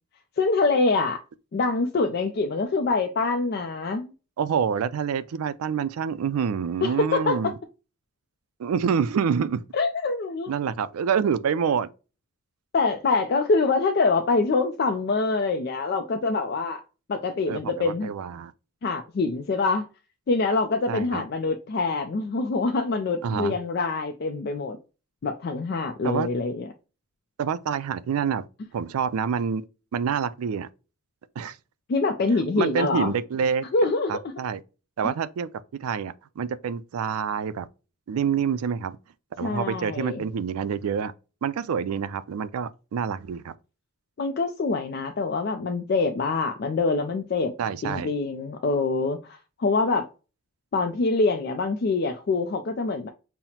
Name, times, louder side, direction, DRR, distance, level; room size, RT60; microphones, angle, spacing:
voice 1, 0.4-1.2 1.5-4.1 6.8-7.5 9.7-10.5 12.7-16.8 17.1-18.1 18.8-19.9 20.3-24.8 25.2-26.7 31.9-33.1 33.7-34.1 39.4-40.2 44.2-47.5 47.8-50.1 50.7-53.1, left 3 dB, 50° left, 0.3 m, -25 dB
voice 2, 4.4-7.5 8.6-9.6 10.5-11.9 17.5-18.5 20.9-21.2 23.2-23.5 26.0-26.3 27.4-28.4 28.7-29.6 29.9-30.7 31.4-31.6 32.5-33.7 34.1-34.6 35.0-35.5 35.8-37.7 38.1-39.0 39.4-41.1 41.4-43.5 47.6-48.1, right 7 dB, 85° right, 0.4 m, -27 dB
5.6 x 2.0 x 2.8 m
head